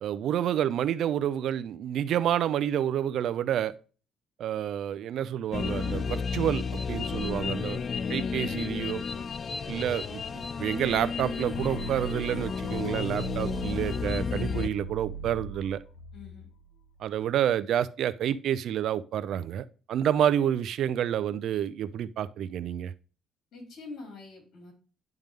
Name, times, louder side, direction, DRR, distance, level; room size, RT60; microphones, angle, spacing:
voice 1, 0.0-3.7 4.4-7.8 8.1-9.0 9.7-15.8 17.0-22.9, right 10 dB, 65° right, 0.5 m, -29 dB
sound 1, 5.5-14.7, left 5 dB, 40° left, 0.4 m, -32 dB
sound 2, 11.5-17.4, right 4 dB, 90° left, 0.6 m, -41 dB
voice 2, 16.1-16.5 23.5-24.7, left 3 dB, 65° left, 3.9 m, -44 dB
10.5 x 3.6 x 3.2 m
cardioid pair, 105°, 0 cm